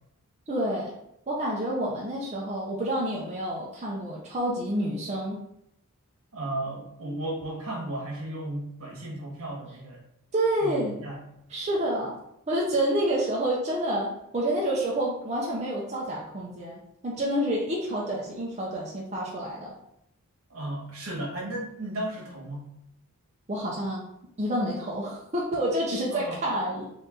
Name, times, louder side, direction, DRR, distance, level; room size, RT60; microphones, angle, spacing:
voice 1, 0.5-1.0 1.3-5.4 10.3-11.0 11.5-12.2 12.5-19.7 23.5-24.0 24.4-26.9, right 1 dB, 30° right, -4 dB, 0.7 m, -28 dB
voice 2, 6.3-10.0 10.6-11.2 20.5-22.6 26.1-26.4, right 1 dB, 75° right, -2 dB, 1.5 m, -34 dB
4.4 x 2.6 x 3.8 m, 0.77 s
head